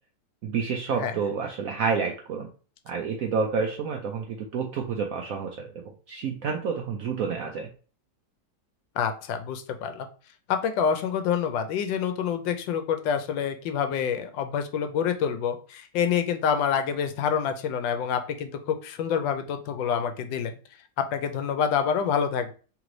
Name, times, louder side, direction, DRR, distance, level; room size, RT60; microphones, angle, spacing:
voice 1, 0.4-2.5 2.9-7.7, right 5 dB, 75° right, 2 dB, 0.8 m, -29 dB
voice 2, 9.0-10.1 10.5-20.5 21.1-22.5, left 7 dB, 80° left, 7 dB, 1.3 m, -27 dB
3.4 x 3.1 x 3.8 m, 0.38 s
omnidirectional pair, 2.0 m